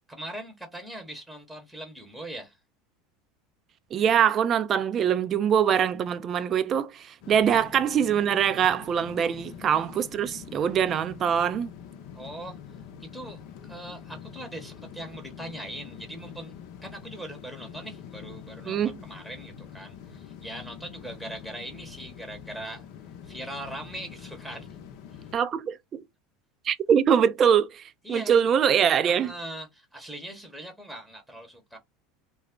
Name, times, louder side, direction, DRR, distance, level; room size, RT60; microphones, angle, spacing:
voice 1, 0.1-2.6 7.3-7.4 9.2-9.3 12.1-16.5 16.8-22.9 23.2-24.8 25.1-25.3 28.0-28.5 29.0-31.8, right 1 dB, ahead, 0.9 m, -41 dB
voice 2, 3.9-11.7 18.7-19.0 25.3-26.0 26.6-27.8 28.1-29.3, right 8 dB, 40° right, 0.4 m, -23 dB
sound 1, 7.2-25.4, left 8 dB, 65° left, 0.6 m, -45 dB
2.3 x 2.0 x 3.5 m
hypercardioid pair, 90°, 0 cm